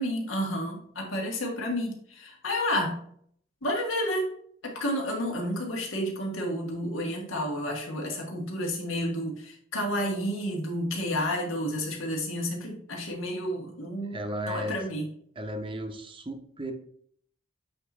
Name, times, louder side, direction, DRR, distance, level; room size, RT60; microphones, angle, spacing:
voice 1, 0.0-3.0 3.6-4.3 4.6-14.2 14.5-15.1, equal, 85° left, 1 dB, 1.7 m, -30 dB
voice 2, 14.1-14.8 15.4-16.7, right 1 dB, 25° right, 5 dB, 0.7 m, -34 dB
8.5 x 2.9 x 4.3 m, 0.63 s
head